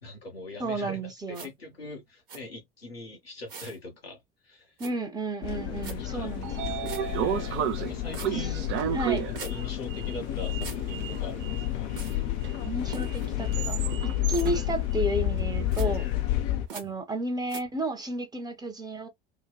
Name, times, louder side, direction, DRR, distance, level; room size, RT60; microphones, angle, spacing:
voice 1, 0.0-4.2 4.4-4.7 5.6-8.7 9.3-11.9 15.8-16.2, left 2 dB, 85° left, 1.1 m, -42 dB
voice 2, 0.6-1.5 4.8-6.8 8.3-8.5 8.9-9.3 12.6-16.1 16.7-19.1, right 2 dB, 15° right, 0.8 m, -32 dB
sound 1, 1.3-1.5 2.3-2.4 3.5-3.8 4.8-4.9 5.8-6.0 6.8-7.0 8.1-8.3 9.3-9.5 10.6-10.8 12.0-12.2 12.9-13.3 14.3-14.5 15.7-15.9 16.7-16.8 17.5-17.6, right 5 dB, 70° right, 1.1 m, -41 dB
sound 2, 5.4-16.7, left 13 dB, 50° left, 0.5 m, -30 dB
Sliding door, 6.0-16.1, right 9 dB, 45° right, 0.5 m, -34 dB
3.0 x 2.2 x 2.2 m
figure-of-eight pair, 70°, 29 cm